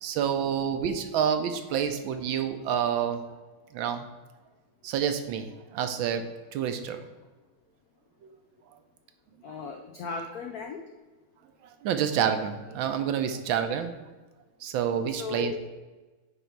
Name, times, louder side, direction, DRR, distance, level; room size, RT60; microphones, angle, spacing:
voice 1, 0.0-3.2 3.7-4.1 4.8-6.3 6.5-7.0 9.5-9.6 11.8-13.9 14.6-15.5, right 8 dB, 75° right, 8 dB, 1.3 m, -28 dB
voice 2, 9.4-10.8 15.2-15.7, left 5 dB, 90° left, 4 dB, 0.8 m, -36 dB
9.4 x 3.4 x 4.5 m, 1.2 s
omnidirectional pair, 2.3 m